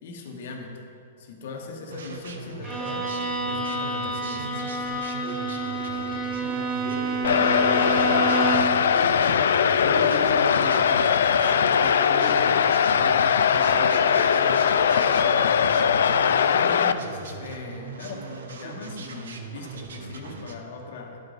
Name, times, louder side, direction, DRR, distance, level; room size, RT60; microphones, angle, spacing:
voice 1, 0.0-0.8 1.2-3.1 3.4-4.9 16.4-21.2, left 3 dB, 55° left, 2 dB, 1.1 m, -39 dB
sound 1, 1.9-20.6, right 4 dB, 85° right, 0.8 m, -40 dB
Bowed string instrument, 2.6-8.8, right 3 dB, 10° right, 0.9 m, -29 dB
voice 2, 5.2-8.3 8.8-9.3 9.8-12.4 12.8-15.6, left 1 dB, 40° left, -2 dB, 1.4 m, -37 dB
sound 2, 7.2-16.9, left 7 dB, 80° left, 0.3 m, -20 dB
11.0 x 4.9 x 3.9 m, 2.6 s
hypercardioid pair, 170°, 0 cm